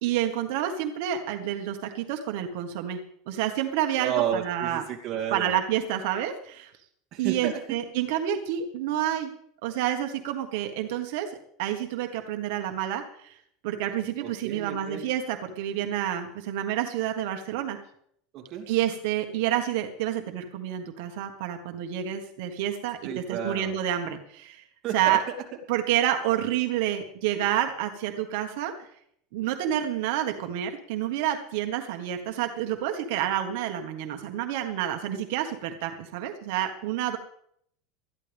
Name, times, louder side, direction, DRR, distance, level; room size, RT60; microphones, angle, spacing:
voice 1, 0.0-3.0 3.3-4.8 5.3-6.7 7.2-9.3 9.6-11.3 11.6-13.4 13.6-17.8 18.7-24.6 24.9-25.2 25.7-28.9 29.3-37.2, right 11 dB, 65° right, 4 dB, 1.5 m, -29 dB
voice 2, 4.0-5.5 7.1-7.8 14.2-15.0 18.3-18.7 23.0-23.8 24.8-25.2, right 9 dB, 35° right, 1 dB, 3.0 m, -32 dB
20.5 x 13.5 x 3.5 m, 0.68 s
supercardioid pair, 170°, 0 cm